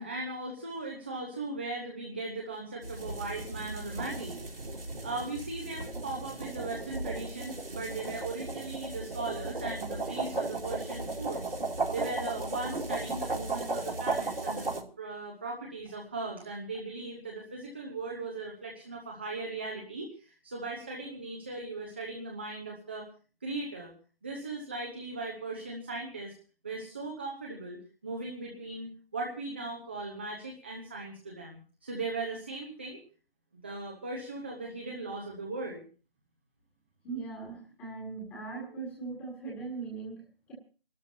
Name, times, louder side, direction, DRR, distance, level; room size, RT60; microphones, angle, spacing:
voice 1, 0.0-4.4 5.0-11.6 11.9-23.1 23.4-23.9 24.2-26.3 26.6-27.8 28.0-33.0 33.5-35.8, right 3 dB, 10° right, -1 dB, 0.8 m, -38 dB
sound 1, 2.8-14.8, right 3 dB, 70° right, 3.1 m, -35 dB
voice 2, 37.0-40.5, right 4 dB, 5° left, -2 dB, 1.7 m, -40 dB
28.0 x 13.0 x 2.7 m, 0.36 s
figure-of-eight pair, 165°, 29 cm